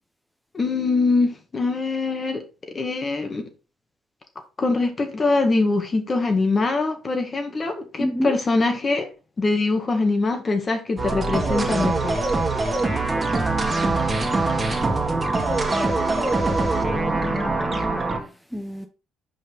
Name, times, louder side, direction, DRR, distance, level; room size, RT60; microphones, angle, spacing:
voice 1, 0.5-2.4 2.7-3.5 4.6-9.1 9.4-12.2, left 3 dB, 35° left, 1.9 m, -23 dB
voice 2, 8.0-8.4 13.0-15.4 16.7-18.9, equal, ahead, 0.8 m, -32 dB
sound 1, 11.0-18.2, right 3 dB, 25° right, 2.0 m, -23 dB
5.6 x 5.2 x 3.9 m
hypercardioid pair, 55°, 0 cm